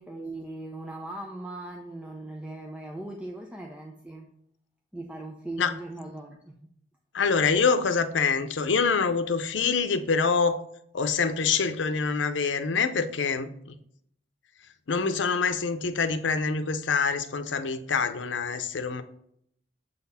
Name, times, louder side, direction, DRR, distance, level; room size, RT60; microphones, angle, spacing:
voice 1, 0.0-4.3 4.9-6.7, right 2 dB, 5° right, 0.6 m, -39 dB
voice 2, 7.1-10.6 10.9-13.8 14.9-19.0, left 5 dB, 85° left, 0.6 m, -25 dB
7.7 x 4.1 x 4.2 m
head